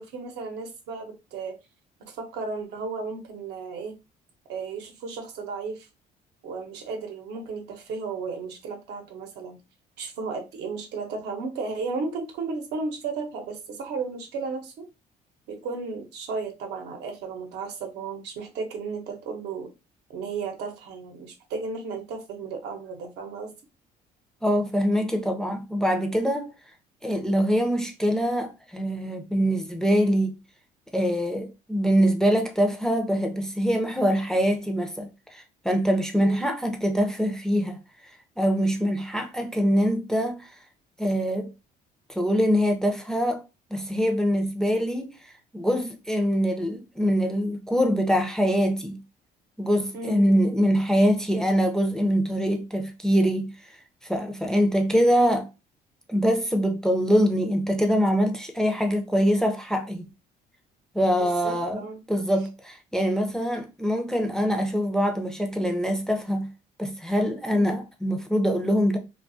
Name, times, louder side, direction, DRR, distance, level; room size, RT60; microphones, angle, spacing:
voice 1, 0.0-1.6 2.1-4.0 4.5-5.9 6.4-9.6 10.0-14.9 15.5-19.7 20.1-23.5 36.2-36.4 49.9-50.4 61.2-62.0 67.5-67.7, right 4 dB, 85° right, 0.7 m, -34 dB
voice 2, 24.4-26.5 27.0-30.4 30.9-37.8 38.4-40.5 41.0-41.5 42.1-43.4 43.7-45.1 45.5-49.0 49.6-53.5 54.0-55.5 56.1-60.1 60.9-66.5 66.8-69.0, equal, 5° left, 0.4 m, -24 dB
2.3 x 2.3 x 2.5 m
cardioid pair, 110°, 17 cm